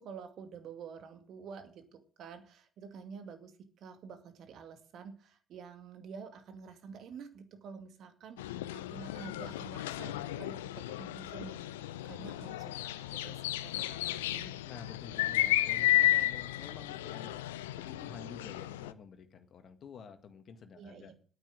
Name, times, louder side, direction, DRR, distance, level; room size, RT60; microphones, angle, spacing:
voice 1, 0.0-14.6 20.7-21.1, right 6 dB, 55° right, 8 dB, 2.3 m, -49 dB
sound 1, 8.4-18.9, left 15 dB, 80° left, 0.5 m, -33 dB
voice 2, 14.7-17.4 17.7-21.1, left 6 dB, 45° left, 8 dB, 1.8 m, -49 dB
10.5 x 9.2 x 7.6 m, 0.43 s
hypercardioid pair, 55°, 0 cm